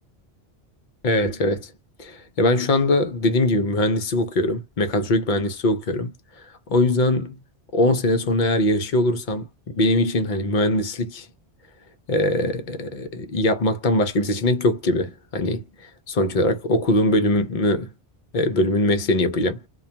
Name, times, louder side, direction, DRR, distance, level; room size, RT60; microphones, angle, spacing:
voice 1, 1.0-1.7 2.0-6.1 6.7-7.4 7.7-11.3 12.1-15.6 16.1-17.9 18.3-19.7, left 1 dB, 55° left, 0.7 m, -21 dB
2.3 x 2.3 x 2.7 m
omnidirectional pair, 1.1 m